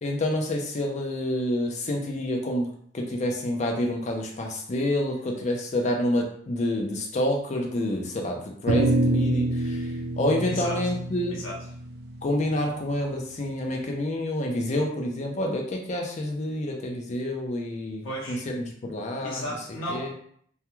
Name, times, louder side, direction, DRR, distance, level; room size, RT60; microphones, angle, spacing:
voice 1, 0.0-2.7 2.9-11.4 12.2-19.4 19.9-20.1, left 1 dB, 40° left, 1 dB, 0.5 m, -28 dB
sound 1, 8.7-13.2, right 1 dB, 55° right, 0.3 m, -27 dB
voice 2, 10.5-10.8 11.3-11.6 18.0-18.5 19.2-20.1, equal, 85° left, -4 dB, 0.7 m, -34 dB
2.3 x 2.2 x 2.9 m, 0.63 s
head